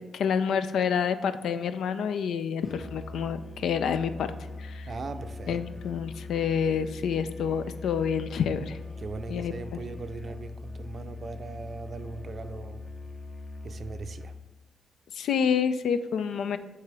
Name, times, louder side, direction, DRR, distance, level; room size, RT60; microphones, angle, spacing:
voice 1, 0.1-4.3 4.6-4.9 5.5-8.8 9.3-9.5 15.1-16.6, left 7 dB, 80° left, 11 dB, 0.4 m, -28 dB
Musical instrument, 2.6-14.5, left 3 dB, 30° left, 0.6 m, -41 dB
voice 2, 4.9-5.6 9.0-12.8 13.6-14.3, right 4 dB, 50° right, 9 dB, 0.5 m, -39 dB
7.5 x 2.9 x 4.8 m, 1.2 s
cardioid pair, 65°, 0 cm